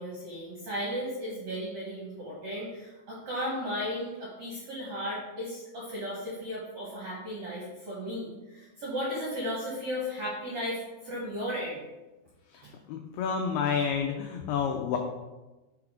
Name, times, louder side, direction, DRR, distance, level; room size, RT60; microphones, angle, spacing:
voice 1, 0.0-11.8 12.6-12.7, equal, 65° right, -6 dB, 1.7 m, -35 dB
voice 2, 12.9-15.0, left 6 dB, 85° left, 3 dB, 2.2 m, -29 dB
5.8 x 4.7 x 5.0 m, 1.1 s
omnidirectional pair, 5.0 m